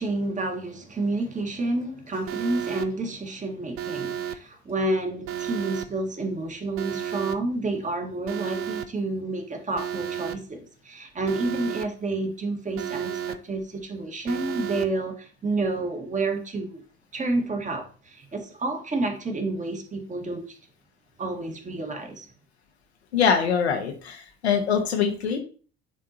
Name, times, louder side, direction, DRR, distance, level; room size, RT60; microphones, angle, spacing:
voice 1, 0.0-16.8 17.1-20.6 21.2-22.3, right 2 dB, 25° right, 1.6 m, -29 dB
Alarm, 2.3-2.9 3.8-4.4 5.3-5.9 6.8-7.4 8.3-8.9 9.8-10.4 11.3-11.9 12.8-13.4 14.3-14.9, right 9 dB, 45° right, 0.6 m, -32 dB
voice 2, 23.1-25.4, left 7 dB, 85° left, 1.1 m, -23 dB
9.9 x 3.6 x 2.9 m
hypercardioid pair, 65°, 32 cm